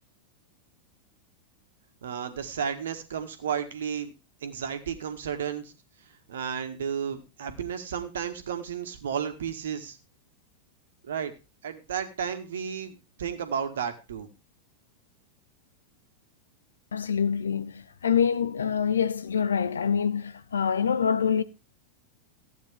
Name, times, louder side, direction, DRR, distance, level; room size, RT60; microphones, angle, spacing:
voice 1, 2.0-4.1 4.4-5.7 6.3-10.0 11.1-11.3 11.6-14.3, right 7 dB, 60° right, 1.9 m, -33 dB
voice 2, 16.9-21.4, left 7 dB, 70° left, 0.9 m, -25 dB
15.0 x 9.2 x 3.7 m
figure-of-eight pair, 90°, 0 cm